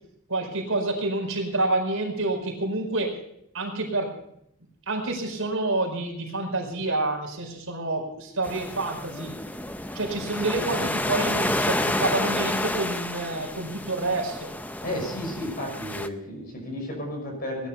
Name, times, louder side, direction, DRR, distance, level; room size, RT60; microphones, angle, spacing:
voice 1, 0.3-3.2 3.5-4.2 4.9-9.3 9.9-14.5, right 2 dB, 70° right, 0 dB, 4.8 m, -28 dB
sound 1, 8.4-16.1, left 1 dB, 5° left, 0.5 m, -30 dB
voice 2, 14.8-17.7, left 1 dB, 40° left, 1 dB, 6.3 m, -33 dB
18.5 x 11.0 x 5.6 m, 0.74 s
head